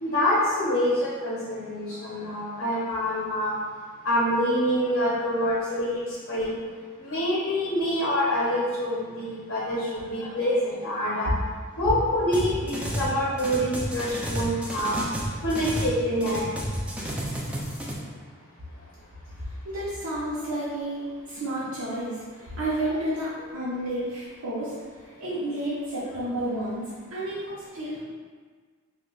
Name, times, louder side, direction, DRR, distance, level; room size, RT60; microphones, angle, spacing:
voice 1, 0.0-3.5 4.0-6.0 6.3-6.6 7.0-11.3 11.8-15.0 15.4-16.4, equal, 60° left, -6 dB, 0.6 m, -26 dB
sound 1, 12.3-13.1 13.4-16.0 16.2-17.9, equal, 5° right, 0.4 m, -31 dB
voice 2, 19.4-21.0 21.3-24.7 25.2-28.0, right 1 dB, 75° right, -9 dB, 0.7 m, -31 dB
2.7 x 2.2 x 3.8 m, 1.5 s
head